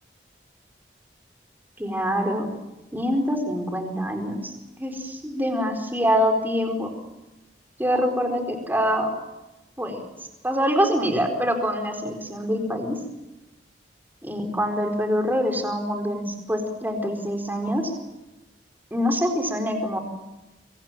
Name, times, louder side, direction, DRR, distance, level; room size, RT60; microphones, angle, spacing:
voice 1, 1.8-2.5 2.9-4.5 4.8-6.9 7.8-9.1 9.8-10.0 10.4-13.0 14.2-17.9 18.9-20.0, equal, 10° right, 4 dB, 4.5 m, -25 dB
26.0 x 24.5 x 7.6 m, 1.0 s
head